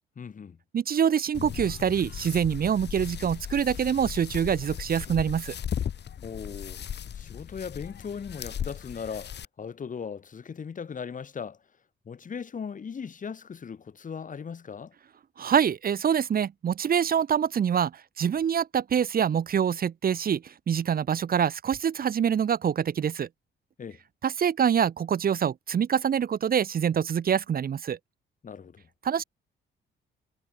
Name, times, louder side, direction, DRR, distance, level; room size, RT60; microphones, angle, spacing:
voice 1, 0.2-0.6 6.2-6.8 7.1-11.6 12.0-14.9 23.8-24.0 28.4-28.9, left 6 dB, 40° left, 2.5 m, -38 dB
voice 2, 0.7-5.5 15.4-17.9 18.2-23.3 24.2-28.0 29.0-29.2, right 8 dB, 50° right, 1.2 m, -25 dB
sound 1, 1.3-9.4, left 9 dB, 60° left, 4.4 m, -37 dB
cardioid pair, 90°, 20 cm